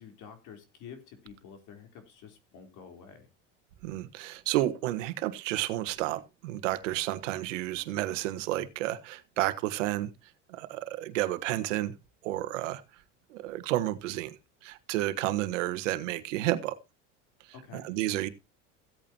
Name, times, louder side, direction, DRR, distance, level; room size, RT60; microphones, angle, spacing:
voice 1, 0.0-3.3 17.5-17.9, left 7 dB, 55° left, 4.0 m, -49 dB
voice 2, 3.8-10.1 10.5-11.9 12.2-12.8 13.3-14.4 14.6-16.7 17.7-18.3, right 15 dB, 80° right, 1.5 m, -31 dB
16.0 x 8.6 x 2.9 m
supercardioid pair, 100°, 37 cm